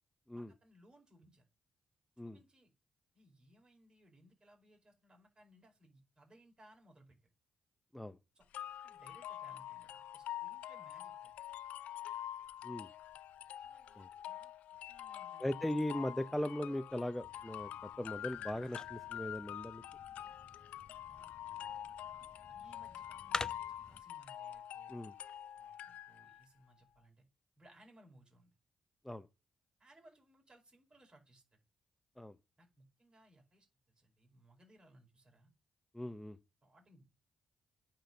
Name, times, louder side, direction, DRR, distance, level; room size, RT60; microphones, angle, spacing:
voice 1, 0.3-1.5 2.2-2.7 3.1-7.3 8.3-11.4 13.6-15.8 20.9-21.8 22.4-25.0 25.6-27.2 27.6-28.5 29.8-31.6 32.6-33.7 33.9-35.5 36.6-37.1, right 1 dB, 35° right, 4.8 m, -65 dB
sound 1, 8.5-26.5, left 11 dB, 75° left, 0.6 m, -46 dB
voice 2, 15.4-19.8 24.9-25.1 29.0-29.3 32.2-32.4 35.9-36.4, left 1 dB, 5° left, 0.8 m, -39 dB
sound 2, 17.2-24.0, left 3 dB, 30° left, 0.6 m, -48 dB
9.0 x 4.5 x 6.8 m
hypercardioid pair, 45°, 2 cm